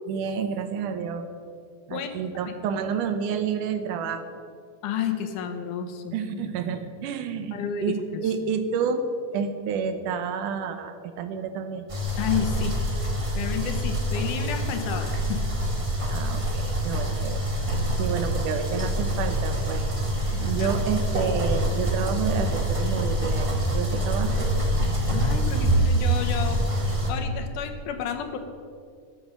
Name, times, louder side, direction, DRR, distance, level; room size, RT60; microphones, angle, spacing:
voice 1, 0.1-1.3 1.9-4.2 6.1-11.9 16.1-17.5 18.0-19.9 20.4-24.5, right 6 dB, 80° right, 9 dB, 2.4 m, -29 dB
voice 2, 4.8-6.5 7.5-8.2 12.2-12.7 13.3-15.4 20.3-20.7 25.1-26.6 27.1-28.4, left 8 dB, 80° left, 6 dB, 2.6 m, -31 dB
sound 1, 11.9-27.1, right 1 dB, 35° right, 0.5 m, -25 dB
13.5 x 8.8 x 6.3 m, 2.2 s
omnidirectional pair, 3.6 m